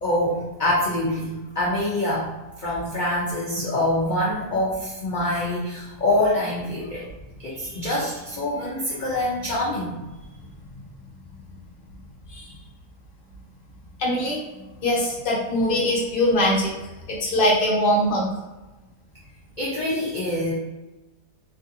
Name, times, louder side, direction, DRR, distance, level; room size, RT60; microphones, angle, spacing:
voice 1, 0.0-7.1 7.4-9.9 19.6-20.5, left 1 dB, 80° left, -7 dB, 0.4 m, -25 dB
voice 2, 14.0-14.4 14.8-16.7 17.1-18.3, left 1 dB, 40° left, -5 dB, 0.9 m, -22 dB
3.2 x 2.5 x 2.6 m, 1.1 s
omnidirectional pair, 1.8 m